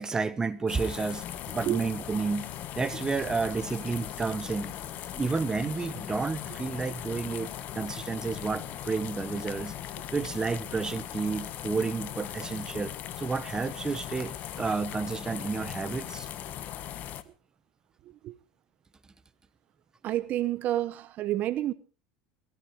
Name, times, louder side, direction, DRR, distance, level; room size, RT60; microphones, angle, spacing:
voice 1, 0.0-2.5 2.7-4.7 5.1-9.7 10.1-16.3, right 4 dB, 20° right, 1.3 m, -31 dB
sound 1, 0.7-17.2, left 11 dB, 50° left, 1.5 m, -39 dB
voice 2, 18.0-18.4 20.0-21.7, right 13 dB, 50° right, 1.0 m, -29 dB
19.0 x 14.0 x 4.8 m
hypercardioid pair, 95°, 4 cm